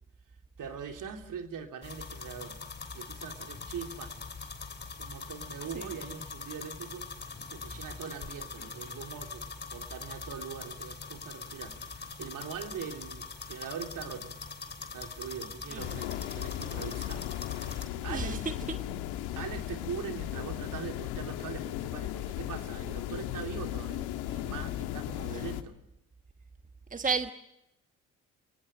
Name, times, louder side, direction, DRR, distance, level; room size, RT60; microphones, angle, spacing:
voice 1, 0.6-2.6 2.9-4.2 5.0-7.1 7.5-14.3 14.9-18.4 19.3-25.7, right 7 dB, 50° right, 4 dB, 3.3 m, -42 dB
sound 1, 1.8-17.8, left 4 dB, 25° left, 3.5 m, -43 dB
Laughter, 5.4-6.1 6.5-6.7 8.2-9.3 10.9-11.9 13.0-14.2, left 5 dB, 50° left, 6.0 m, -57 dB
sound 2, 15.8-25.6, left 14 dB, 70° left, 1.7 m, -36 dB
voice 2, 18.1-18.4 18.7-18.8 25.3-25.4 26.9-27.3, right 5 dB, 20° right, 8 dB, 1.3 m, -32 dB
28.0 x 18.5 x 9.0 m, 0.86 s
hypercardioid pair, 55°, 39 cm